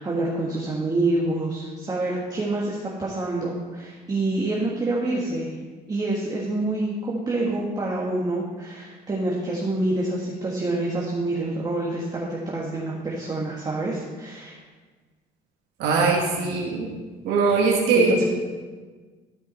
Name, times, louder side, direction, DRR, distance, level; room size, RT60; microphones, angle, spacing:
voice 1, 0.0-5.5 5.9-14.6 17.9-18.3, right 2 dB, 25° right, -4 dB, 1.4 m, -27 dB
voice 2, 15.8-16.9 17.2-18.1, right 4 dB, 85° right, -1 dB, 1.3 m, -21 dB
12.5 x 5.3 x 4.3 m, 1.4 s
cardioid pair, 110°, 17 cm